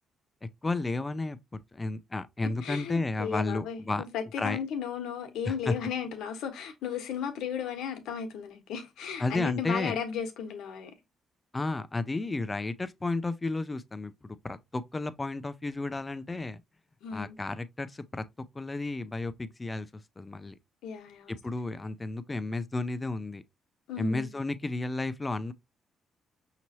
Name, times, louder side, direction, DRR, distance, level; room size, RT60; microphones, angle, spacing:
voice 1, 0.6-4.0 4.4-4.6 5.5-5.7 9.2-10.0 11.5-16.6 17.1-18.2 18.5-19.9 20.2-20.5 21.3-23.4 24.0-25.5, left 2 dB, 20° left, 0.5 m, -32 dB
voice 2, 2.6-10.9 17.0-17.4 20.8-21.4 23.9-24.3, left 7 dB, 85° left, 1.1 m, -35 dB
5.7 x 3.0 x 2.8 m
cardioid pair, 90°, 0 cm